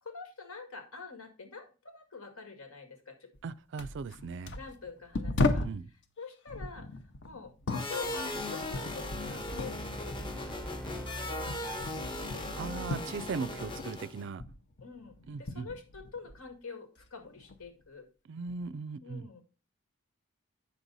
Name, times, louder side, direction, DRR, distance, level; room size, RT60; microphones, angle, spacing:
voice 1, 0.0-3.3 4.5-5.7 6.2-7.5 7.8-12.6 14.8-18.1 19.0-19.4, left 5 dB, 80° left, 2.0 m, -46 dB
sound 1, 3.3-3.5 3.8-5.9 6.5-9.8 10.1-13.9 14.2-16.5 17.0-17.7 18.5-18.7, left 2 dB, 55° left, 0.8 m, -36 dB
voice 2, 3.4-4.5 5.4-5.9 12.6-14.4 15.3-15.7 18.3-19.3, right 4 dB, 55° right, 0.4 m, -38 dB
sound 2, 7.7-14.3, left 1 dB, 25° left, 0.9 m, -38 dB
sound 3, 9.5-12.6, right 1 dB, 5° left, 0.6 m, -44 dB
8.4 x 6.2 x 4.0 m
head